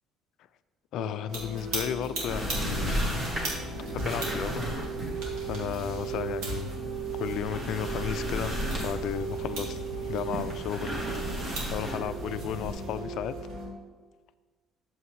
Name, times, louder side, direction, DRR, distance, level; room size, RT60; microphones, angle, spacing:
voice 1, 0.9-3.0 3.9-4.7 5.4-6.7 7.2-11.0 11.7-13.3, left 9 dB, 60° left, 12 dB, 0.3 m, -34 dB
sound 1, 1.0-13.7, right 6 dB, 60° right, 1.9 m, -38 dB
sound 2, 1.3-13.7, equal, 85° right, 2.2 m, -40 dB
sound 3, 2.3-12.7, equal, 30° right, 1.6 m, -35 dB
8.3 x 7.0 x 3.2 m, 1.3 s
cardioid pair, 155°, 0 cm